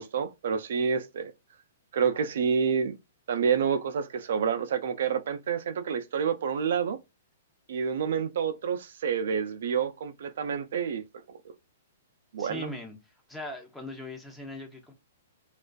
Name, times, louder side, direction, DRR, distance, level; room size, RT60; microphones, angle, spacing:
voice 1, 0.0-1.3 1.9-3.0 3.3-7.0 7.7-11.0 12.3-12.7, right 6 dB, 65° right, 0.3 m, -28 dB
voice 2, 12.4-14.9, left 2 dB, 5° left, 0.6 m, -40 dB
2.4 x 2.3 x 2.2 m
hypercardioid pair, 130°, 0 cm